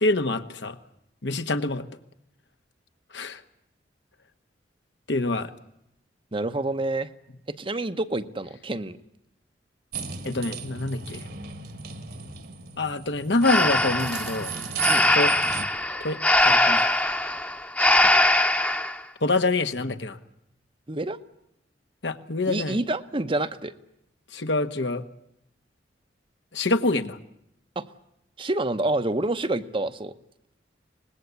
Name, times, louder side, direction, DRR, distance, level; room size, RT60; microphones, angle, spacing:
voice 1, 0.0-0.7 1.2-1.8 3.1-3.4 5.1-5.5 10.2-11.3 12.8-14.6 15.1-15.3 16.0-16.2 16.4-16.9 19.2-20.2 22.0-22.8 24.3-25.0 26.5-27.2, left 2 dB, 75° left, 8 dB, 1.5 m, -26 dB
voice 2, 6.3-7.1 7.5-9.0 14.9-15.1 20.9-21.2 22.5-23.7 27.8-27.9 28.4-30.1, right 2 dB, 30° right, 10 dB, 0.9 m, -28 dB
sound 1, 9.9-15.7, right 6 dB, 60° right, 1.8 m, -35 dB
Breathing, 13.4-19.0, left 1 dB, 10° left, 1.1 m, -21 dB
25.0 x 20.0 x 8.3 m, 0.79 s
head